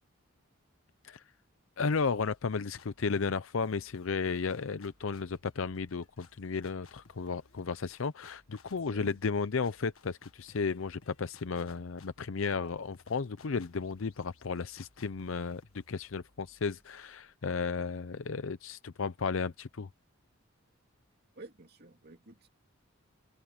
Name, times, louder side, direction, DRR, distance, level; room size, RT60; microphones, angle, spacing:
voice 1, 1.8-19.9, left 5 dB, 70° left, 0.6 m, -34 dB
sound 1, 1.9-3.1 3.6-17.3, left 4 dB, 90° left, 1.6 m, -61 dB
voice 2, 21.3-22.5, right 2 dB, 50° right, 2.7 m, -51 dB
open air
head